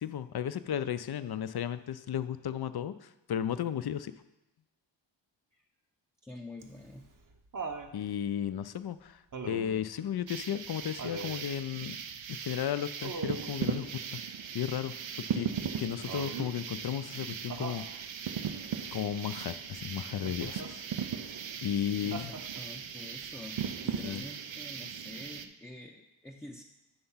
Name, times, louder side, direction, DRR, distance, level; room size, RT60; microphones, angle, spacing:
voice 1, 0.0-4.1 7.9-11.9 12.3-14.2 14.5-14.9 15.3-15.5 15.8-17.8 18.9-20.8 21.6-22.3 24.0-24.2, left 9 dB, 55° left, 13 dB, 0.5 m, -34 dB
voice 2, 6.2-7.1 22.0-26.6, left 2 dB, 5° left, 0 dB, 0.6 m, -47 dB
Laughter, 6.6-7.9 9.3-9.8 11.0-11.4 13.0-13.5 16.1-16.6 17.5-17.9 20.2-20.7 22.1-22.8 24.1-24.2, right 4 dB, 40° right, 0.8 m, -40 dB
sound 1, 10.3-25.5, right 8 dB, 70° right, 0.6 m, -38 dB
8.7 x 3.4 x 5.6 m, 0.96 s
cardioid pair, 40°, 47 cm